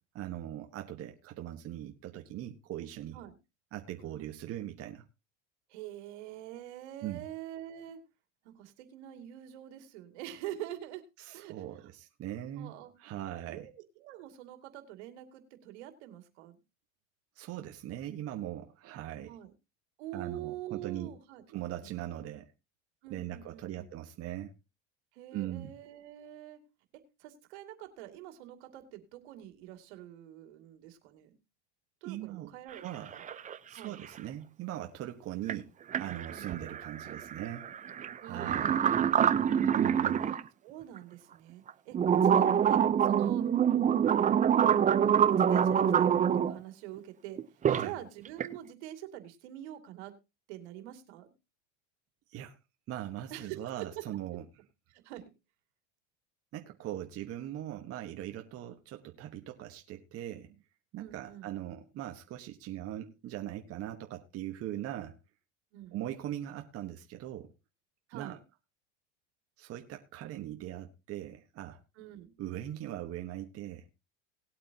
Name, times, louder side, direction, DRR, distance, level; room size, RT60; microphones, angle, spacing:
voice 1, 0.1-3.2 3.7-5.0 7.0-7.2 11.2-13.7 17.3-19.4 20.1-21.1 21.5-22.5 23.1-24.5 25.3-25.7 32.0-32.5 32.8-33.1 33.7-35.7 36.0-37.7 38.2-38.8 39.8-40.2 47.7-47.9 52.3-52.6 52.9-54.4 56.5-60.6 60.9-65.2 65.9-67.5 68.1-68.4 69.6-71.8 72.4-74.0, right 13 dB, 40° right, 1.3 m, -40 dB
voice 2, 5.7-8.0 8.4-11.9 12.6-12.9 13.5-13.7 14.0-16.6 19.3-19.5 20.0-21.4 21.8-21.9 23.0-23.8 25.1-26.6 27.2-31.4 32.0-32.8 33.1-33.3 33.7-34.0 36.3-36.5 38.2-39.7 40.6-43.5 44.1-47.4 47.7-50.1 50.5-51.3 53.3-53.9 54.9-55.3 61.0-61.5 65.7-66.0 68.1-68.4 72.0-72.3, right 12 dB, 75° right, 2.6 m, -45 dB
sound 1, 32.7-32.8 33.1-33.9 35.5-35.6 35.9-40.4 41.0-41.1 41.7-46.5 47.4-47.9 48.2-48.6, right 8 dB, 20° right, 0.7 m, -26 dB
19.0 x 8.4 x 2.9 m
supercardioid pair, 120°, 35 cm